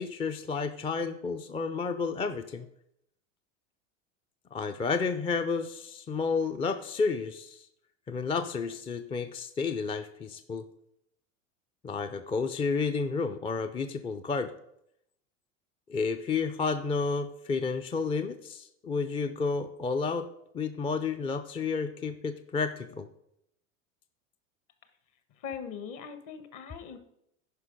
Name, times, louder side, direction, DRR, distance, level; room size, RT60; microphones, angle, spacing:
voice 1, 0.0-2.7 4.5-7.6 8.1-10.7 11.8-14.5 15.9-20.3 20.5-23.1, left 4 dB, 15° left, 9 dB, 0.4 m, -31 dB
voice 2, 25.4-27.0, left 7 dB, 50° left, 9 dB, 1.5 m, -40 dB
9.7 x 5.4 x 5.1 m, 0.77 s
hypercardioid pair, 100°, 40 cm